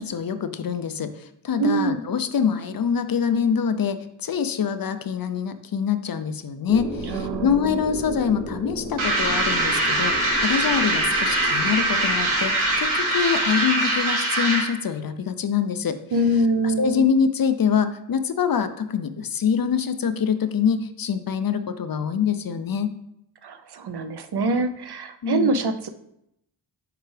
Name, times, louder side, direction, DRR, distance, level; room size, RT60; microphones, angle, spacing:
voice 1, 0.0-16.0 16.3-22.9 25.2-25.5, left 7 dB, 50° left, 11 dB, 0.5 m, -25 dB
voice 2, 1.6-2.0 7.0-7.7 16.1-17.0 23.4-25.9, right 2 dB, 55° right, 9 dB, 0.6 m, -24 dB
sound 1, 6.7-14.1, equal, 5° left, 0.9 m, -35 dB
sound 2, 9.0-14.8, right 1 dB, 80° right, 1.5 m, -22 dB
6.7 x 4.6 x 3.2 m, 0.78 s
wide cardioid pair, 90°, 48 cm